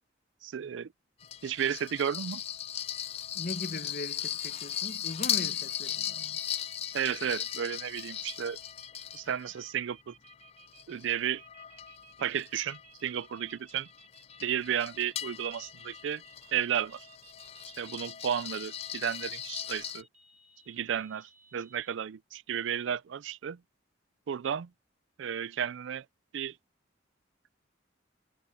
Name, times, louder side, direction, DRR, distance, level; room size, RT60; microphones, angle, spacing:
voice 1, 0.4-0.9 1.4-2.4 6.9-8.6 9.1-10.1 10.9-11.4 12.2-13.9 14.4-16.2 16.5-17.1 17.8-20.1 20.7-23.6 24.3-24.7 25.2-26.0 26.3-26.6, right 8 dB, 85° right, 0.4 m, -33 dB
sound 1, 1.2-9.7 10.3-20.0, left 10 dB, 35° left, 0.3 m, -38 dB
voice 2, 3.3-6.4, left 2 dB, 50° left, 1.1 m, -40 dB
sound 2, 4.1-21.9, right 6 dB, 40° right, 2.6 m, -58 dB
head